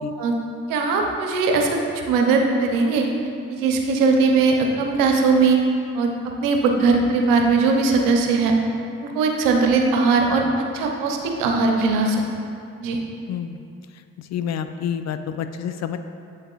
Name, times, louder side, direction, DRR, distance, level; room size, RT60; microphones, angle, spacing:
voice 1, 0.7-3.1 3.5-5.6 5.9-8.5 9.0-10.4 10.7-12.2 12.8-13.0, right 4 dB, 80° right, 2 dB, 0.8 m, -20 dB
voice 2, 13.3-13.6 14.2-16.0, left 8 dB, 55° left, 9 dB, 0.5 m, -28 dB
8.0 x 7.3 x 2.4 m, 2.5 s
hypercardioid pair, 45°, 33 cm